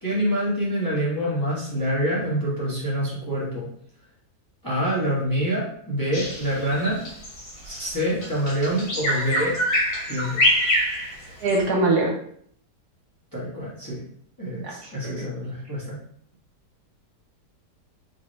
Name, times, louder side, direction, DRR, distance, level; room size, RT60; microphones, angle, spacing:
voice 1, 0.0-3.7 4.6-7.0 7.6-9.6 10.1-10.4 13.3-14.0 14.4-16.0, equal, 15° left, -7 dB, 1.0 m, -26 dB
Bird vocalization bird call bird song, 6.1-11.6, equal, 85° left, 1.8 m, -25 dB
voice 2, 11.4-12.1 14.6-14.7 15.0-15.3, right 2 dB, 70° right, -1 dB, 1.3 m, -22 dB
3.6 x 2.9 x 3.1 m, 0.64 s
omnidirectional pair, 1.8 m